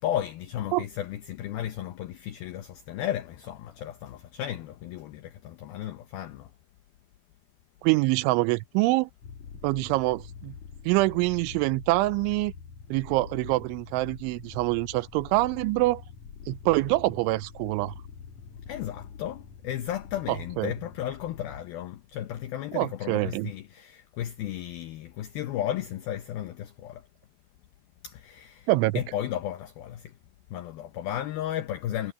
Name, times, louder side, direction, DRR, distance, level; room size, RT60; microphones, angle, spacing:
voice 1, 0.0-6.5 18.7-27.0 28.0-28.7 29.0-30.1 30.5-32.1, left 11 dB, 90° left, 2.1 m, -34 dB
voice 2, 7.8-9.1 9.6-10.5 10.9-12.5 12.9-16.0 16.5-17.9 20.6-20.7 22.7-23.5 28.7-29.0, right 21 dB, 85° right, 2.9 m, -25 dB
sound 1, 9.2-21.6, left 6 dB, 55° left, 2.4 m, -45 dB
omnidirectional pair, 5.5 m